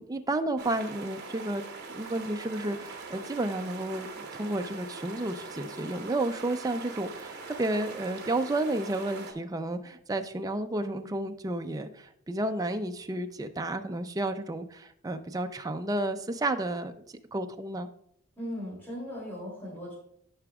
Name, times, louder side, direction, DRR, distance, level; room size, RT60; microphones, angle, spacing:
voice 1, 0.0-1.6 1.9-16.9 17.3-17.9, right 2 dB, 15° right, 7 dB, 0.4 m, -31 dB
sound 1, 0.6-9.3, right 4 dB, 50° right, 1.1 m, -42 dB
voice 2, 18.4-19.9, equal, 10° left, -8 dB, 2.7 m, -38 dB
13.0 x 5.9 x 2.3 m, 0.71 s
head